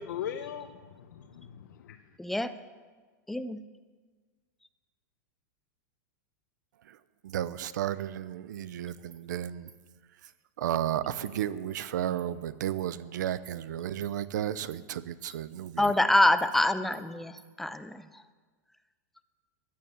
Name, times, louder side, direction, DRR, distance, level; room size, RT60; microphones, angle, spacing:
voice 1, 0.0-2.0, left 8 dB, 90° left, 6 dB, 1.0 m, -39 dB
voice 2, 2.2-2.5 3.3-3.6 15.8-18.2, left 1 dB, ahead, 11 dB, 0.4 m, -26 dB
voice 3, 7.2-9.7 10.6-15.8, right 11 dB, 70° right, 16 dB, 0.8 m, -33 dB
Insect, 8.0-8.1 8.5-8.6 9.1-9.2 9.7-9.8 10.2-10.3 10.7-10.8 11.2-11.4 11.7-11.8 12.2-12.3 12.8-12.9 13.5-13.6 14.0-14.1 14.7-14.8 15.3-15.4 15.8-16.0 16.4-16.5 16.9-17.0 17.4-17.5, right 7 dB, 20° right, 1.6 m, -54 dB
16.5 x 11.0 x 7.3 m, 1.4 s
supercardioid pair, 175°, 10 cm